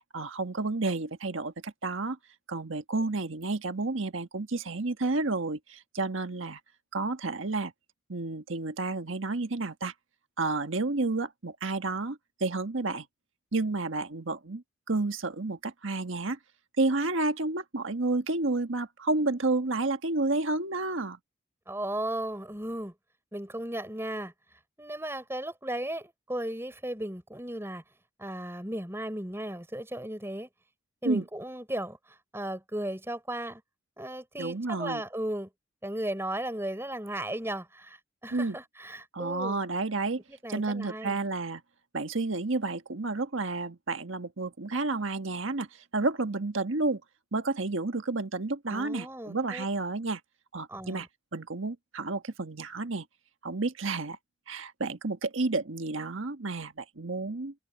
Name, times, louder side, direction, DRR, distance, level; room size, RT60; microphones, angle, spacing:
voice 1, 0.1-2.2 2.5-6.6 6.9-7.7 8.1-9.9 10.4-13.0 13.5-16.4 16.8-21.2 31.0-31.2 34.4-35.0 38.3-38.6 39.1-40.2 40.5-41.6 41.9-47.0 47.3-50.2 50.5-51.1 51.3-53.0 53.4-54.2 54.5-57.5, right 3 dB, 80° right, 1.5 m, -30 dB
voice 2, 21.7-22.9 23.3-24.3 24.8-27.8 28.2-30.5 31.0-33.6 34.0-35.5 35.8-39.6 40.3-41.2 48.7-49.6 50.7-51.1, right 1 dB, 10° right, 5.8 m, -36 dB
head